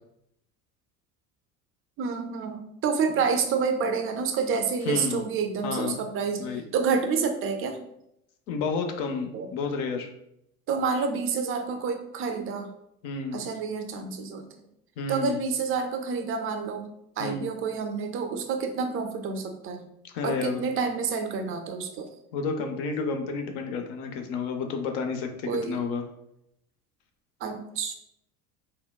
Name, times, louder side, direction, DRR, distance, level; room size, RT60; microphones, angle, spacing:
voice 1, 2.0-7.8 9.3-9.5 10.7-12.7 13.3-14.5 15.1-16.9 17.2-19.8 20.2-22.1 25.4-25.8 27.4-27.9, right 5 dB, 30° right, 6 dB, 0.5 m, -28 dB
voice 2, 4.9-5.2 5.6-6.0 6.4-6.6 8.5-10.1 13.0-13.4 15.0-15.4 17.2-17.5 20.0-20.6 22.3-26.0, left 4 dB, 55° left, 5 dB, 0.6 m, -30 dB
3.6 x 2.2 x 2.2 m, 0.78 s
hypercardioid pair, 75°, 43 cm